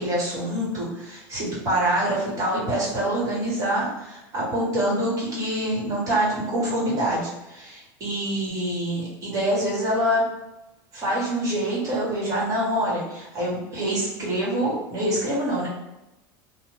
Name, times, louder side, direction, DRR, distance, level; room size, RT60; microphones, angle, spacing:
voice 1, 0.0-10.3 10.9-15.7, right 1 dB, 30° right, -5 dB, 1.4 m, -25 dB
2.7 x 2.1 x 3.1 m, 0.95 s
supercardioid pair, 140°, 10 cm